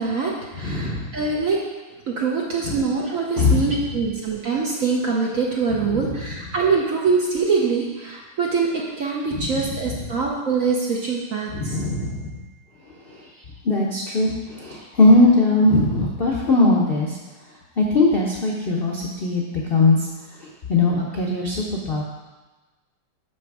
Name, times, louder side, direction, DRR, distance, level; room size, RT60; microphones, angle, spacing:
voice 1, 0.0-1.6 2.1-11.8, right 4 dB, 60° right, -2 dB, 0.9 m, -24 dB
voice 2, 0.6-1.1 2.6-2.8 3.4-4.1 5.7-6.6 9.3-10.2 11.5-12.4 13.1-13.2 13.6-17.2 17.8-19.4 19.7-20.1 20.4-22.0, left 2 dB, 80° left, -3 dB, 0.5 m, -20 dB
6.1 x 6.0 x 4.7 m, 1.2 s
omnidirectional pair, 2.3 m